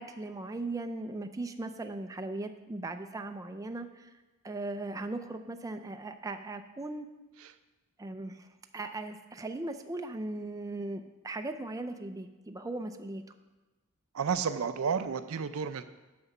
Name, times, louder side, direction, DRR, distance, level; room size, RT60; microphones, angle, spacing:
voice 1, 0.0-4.1 4.4-7.1 8.0-8.5 8.7-13.2, right 2 dB, 15° right, 6 dB, 0.4 m, -38 dB
voice 2, 14.1-15.8, right 6 dB, 70° right, 11 dB, 0.5 m, -31 dB
9.5 x 6.0 x 5.4 m, 1.1 s
head